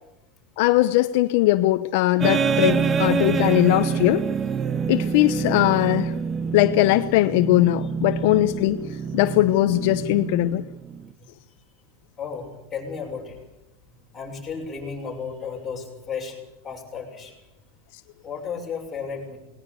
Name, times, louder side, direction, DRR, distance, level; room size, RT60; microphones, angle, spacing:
voice 1, 0.6-4.2 4.9-6.1 6.5-8.8 9.1-10.6, left 17 dB, 60° left, 10 dB, 0.9 m, -20 dB
sound 1, 2.2-11.1, right 6 dB, 20° right, 0.9 m, -26 dB
voice 2, 12.2-13.4 14.1-16.4 16.6-17.3 18.2-19.4, left 6 dB, 15° left, -1 dB, 6.4 m, -33 dB
19.5 x 19.0 x 8.4 m, 0.97 s
supercardioid pair, 145°, 0 cm